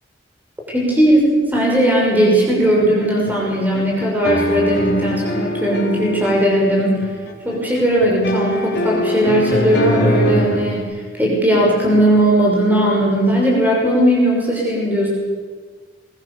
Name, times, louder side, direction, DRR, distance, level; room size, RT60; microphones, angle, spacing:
voice 1, 0.7-7.1 7.4-15.1, right 1 dB, 10° right, -3 dB, 6.2 m, -17 dB
sound 1, 2.6-10.8, left 1 dB, 75° left, 4.3 m, -23 dB
23.0 x 22.0 x 7.0 m, 1.5 s
head